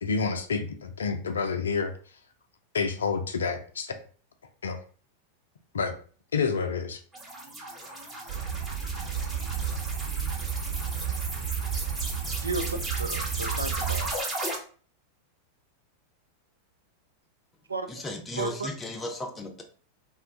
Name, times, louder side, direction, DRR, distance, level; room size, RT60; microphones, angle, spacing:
voice 1, 0.0-1.9 2.7-3.9 4.6-4.8 5.7-5.9 6.3-7.0, left 5 dB, 70° left, 7 dB, 0.4 m, -28 dB
sound 1, 7.1-14.6, right 1 dB, 10° right, 1.0 m, -36 dB
sound 2, 8.3-14.1, right 8 dB, 55° right, 1.2 m, -32 dB
voice 2, 12.4-14.1 17.7-18.0 18.4-18.7, right 3 dB, 75° right, 7 dB, 0.4 m, -34 dB
voice 3, 17.9-19.6, left 2 dB, 15° left, 3 dB, 0.6 m, -35 dB
2.4 x 2.2 x 3.5 m, 0.42 s
figure-of-eight pair, 90°, 0 cm